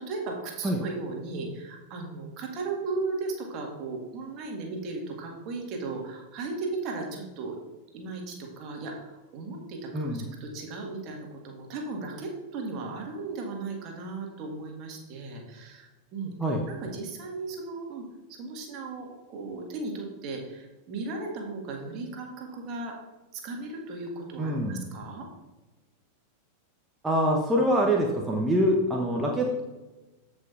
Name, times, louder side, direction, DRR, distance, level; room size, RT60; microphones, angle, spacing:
voice 1, 0.0-7.6 7.9-16.3 16.7-22.9 23.3-25.3, right 3 dB, 40° right, 0 dB, 1.8 m, -36 dB
voice 2, 9.9-10.3 16.4-16.6 24.4-24.9 27.0-29.6, equal, 10° right, -1 dB, 0.9 m, -25 dB
14.5 x 5.2 x 2.6 m, 1.1 s
figure-of-eight pair, 90°, 0 cm